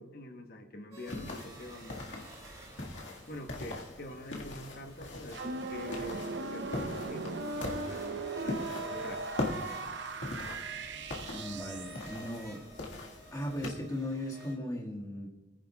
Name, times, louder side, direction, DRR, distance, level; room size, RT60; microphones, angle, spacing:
voice 1, 0.0-2.3 3.3-9.3, left 1 dB, 55° left, 5 dB, 1.0 m, -45 dB
sound 1, 0.9-14.5, right 1 dB, 20° right, 2.7 m, -52 dB
sound 2, 1.1-13.7, left 2 dB, 90° left, 1.8 m, -41 dB
sound 3, 5.3-12.0, right 3 dB, 75° right, 0.7 m, -38 dB
voice 2, 11.3-12.6 13.3-15.3, left 1 dB, 20° left, -3 dB, 1.8 m, -37 dB
22.5 x 10.0 x 2.3 m, 1.1 s
head